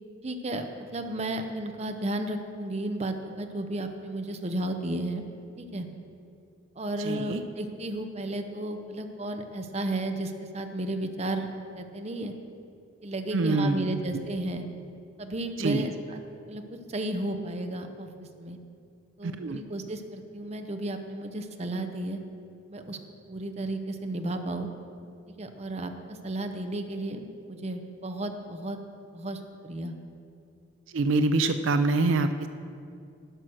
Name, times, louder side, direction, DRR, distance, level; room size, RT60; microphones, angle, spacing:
voice 1, 0.2-5.2 5.6-5.9 6.8-11.5 11.7-12.3 13.0-14.6 15.2-16.2 16.5-18.1 18.4-18.6 19.2-22.2 22.7-23.0 23.3-24.7 25.4-28.8 29.1-29.9, right 1 dB, 35° right, 6 dB, 0.7 m, -33 dB
voice 2, 7.0-7.4 13.3-14.0 15.6-15.9 19.2-19.6 30.9-32.5, right 3 dB, 75° right, 10 dB, 0.4 m, -25 dB
11.0 x 6.2 x 6.2 m, 2.4 s
head